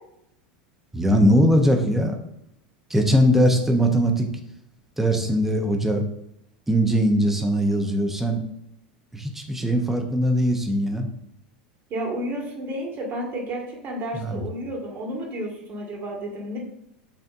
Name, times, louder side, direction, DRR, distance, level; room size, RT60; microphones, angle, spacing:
voice 1, 0.9-2.2 2.9-4.3 5.0-6.0 6.7-8.4 9.1-11.1 14.1-14.4, equal, 5° right, 3 dB, 0.8 m, -20 dB
voice 2, 11.9-16.6, right 1 dB, 45° right, -1 dB, 1.6 m, -31 dB
7.0 x 2.5 x 2.5 m, 0.76 s
hypercardioid pair, 95°, 5 cm